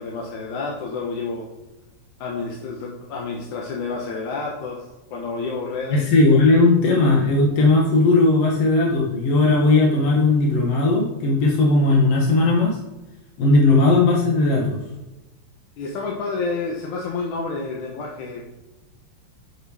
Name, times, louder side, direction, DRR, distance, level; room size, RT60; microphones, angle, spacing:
voice 1, 0.0-1.5 2.2-4.8 5.1-6.0 15.8-18.4, left 4 dB, 75° left, -1 dB, 2.6 m, -29 dB
voice 2, 5.9-12.8 13.4-14.8, left 2 dB, 55° left, -2 dB, 2.4 m, -17 dB
10.0 x 7.2 x 4.9 m, 1.1 s
omnidirectional pair, 3.6 m